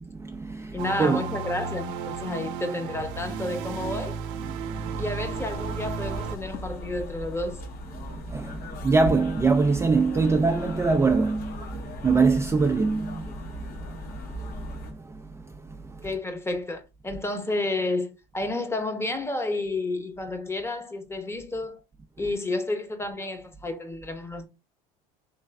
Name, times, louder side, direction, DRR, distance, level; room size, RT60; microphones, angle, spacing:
voice 1, 0.0-1.2 4.5-5.0 8.1-16.1, right 4 dB, 15° right, 0.4 m, -25 dB
voice 2, 0.7-4.2 5.0-7.6 16.0-21.8 22.2-24.5, left 2 dB, 10° left, 0.9 m, -31 dB
sound 1, 0.8-6.4, right 5 dB, 70° right, 0.6 m, -33 dB
sound 2, 5.2-14.9, left 1 dB, 50° left, 1.1 m, -38 dB
3.3 x 3.1 x 3.4 m
hypercardioid pair, 85°, 20 cm